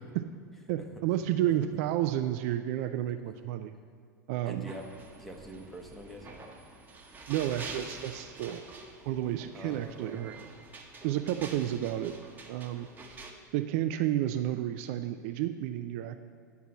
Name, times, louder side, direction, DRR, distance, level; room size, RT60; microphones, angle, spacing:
voice 1, 0.7-3.7 4.3-4.6 7.3-8.7 9.1-10.4 11.0-12.1 12.5-13.2 13.5-16.2, right 12 dB, 50° right, 9 dB, 0.4 m, -31 dB
voice 2, 4.4-6.4 9.5-10.5 11.3-11.6, equal, ahead, 1 dB, 1.1 m, -46 dB
sound 1, 4.7-13.3, right 3 dB, 20° right, 1.2 m, -47 dB
9.8 x 4.6 x 7.2 m, 2.1 s
figure-of-eight pair, 90°, 10 cm